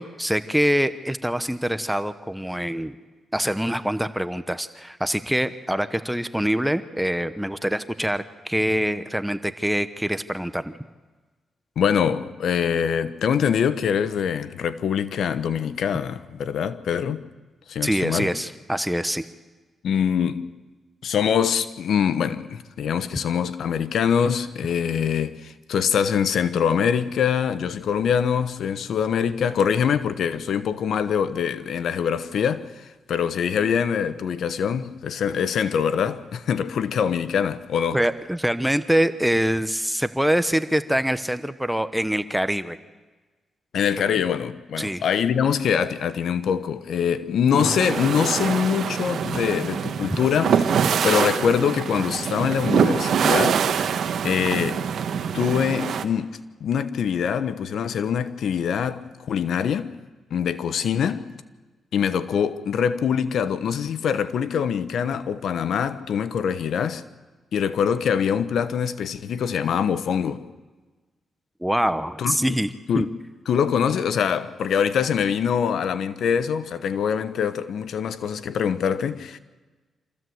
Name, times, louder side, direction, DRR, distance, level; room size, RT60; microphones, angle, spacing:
voice 1, 0.0-3.0 3.3-10.8 17.8-19.3 37.9-42.8 44.8-45.0 47.5-47.7 71.6-73.1, equal, 5° right, 0.9 m, -24 dB
voice 2, 11.8-17.2 17.7-18.3 19.8-20.5 21.0-38.0 43.7-53.6 54.2-54.8 55.3-59.9 60.3-61.3 61.9-67.0 67.5-70.4 72.2-72.6 72.9-73.1 73.5-79.4, left 7 dB, 75° left, 1.0 m, -24 dB
sound 1, 47.6-56.1, right 7 dB, 70° right, 1.3 m, -24 dB
26.0 x 15.0 x 7.9 m
cardioid pair, 75°, 0 cm